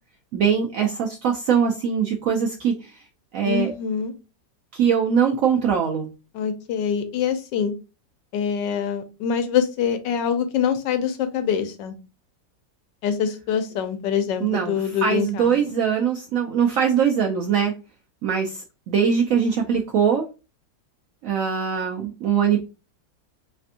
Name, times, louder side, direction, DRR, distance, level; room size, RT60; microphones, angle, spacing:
voice 1, 0.3-2.9 3.3-3.7 4.7-6.1 14.4-17.7 18.2-20.3 21.2-22.7, right 7 dB, 75° right, 1 dB, 0.7 m, -22 dB
voice 2, 3.5-4.1 6.3-7.7 8.3-11.9 13.0-15.6, left 7 dB, 85° left, 8 dB, 1.3 m, -24 dB
3.3 x 3.3 x 2.6 m, 0.31 s
omnidirectional pair, 1.9 m